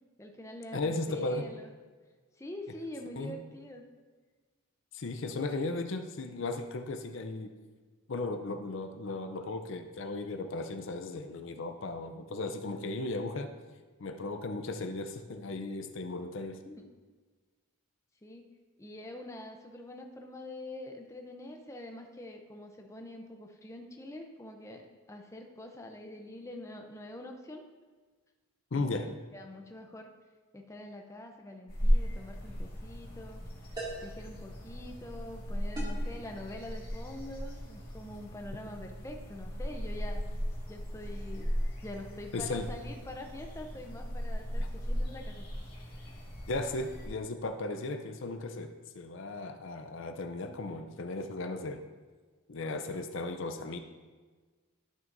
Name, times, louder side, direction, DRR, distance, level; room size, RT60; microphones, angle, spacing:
voice 1, 0.2-1.7 2.4-3.8 16.6-16.9 18.2-18.5 18.8-27.6 28.8-30.1 30.5-33.5 34.0-40.2 40.7-41.5 41.8-45.5, left 1 dB, 15° left, 3 dB, 0.6 m, -45 dB
voice 2, 0.7-1.5 3.2-3.4 4.9-7.5 8.1-13.5 14.0-16.6 28.7-29.1 42.3-42.7 44.6-44.7 46.5-51.8 52.5-53.8, left 2 dB, 60° left, 7 dB, 0.5 m, -36 dB
sound 1, 31.7-47.1, equal, 45° left, 1.9 m, -36 dB
sound 2, 32.1-32.3 33.7-34.2 35.8-36.1, right 2 dB, 20° right, 2.2 m, -40 dB
12.0 x 6.1 x 2.6 m, 1.4 s
head